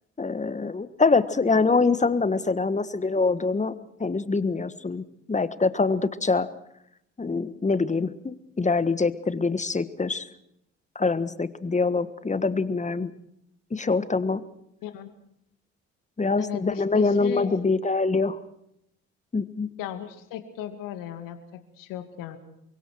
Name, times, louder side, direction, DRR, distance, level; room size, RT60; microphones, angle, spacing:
voice 1, 0.2-3.7 4.0-6.5 7.2-10.2 10.9-13.1 13.7-14.4 16.2-18.4 19.3-19.7, left 4 dB, 20° left, 13 dB, 1.5 m, -24 dB
voice 2, 16.4-17.5 19.8-22.4, left 11 dB, 65° left, 7 dB, 2.6 m, -36 dB
29.0 x 24.0 x 4.7 m, 0.78 s
figure-of-eight pair, 50°, 35 cm